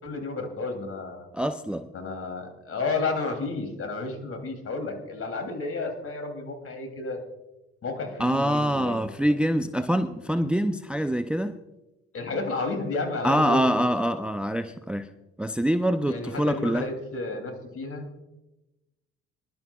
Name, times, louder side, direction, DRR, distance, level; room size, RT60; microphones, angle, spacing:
voice 1, 0.0-1.3 1.9-7.2 7.8-9.3 12.1-13.8 16.0-18.1, left 3 dB, 45° left, 4 dB, 3.2 m, -32 dB
voice 2, 1.3-1.9 8.2-11.6 13.2-15.1 15.4-16.9, equal, 5° right, 9 dB, 0.6 m, -25 dB
22.0 x 11.5 x 2.4 m, 1.0 s
hypercardioid pair, 55°, 30 cm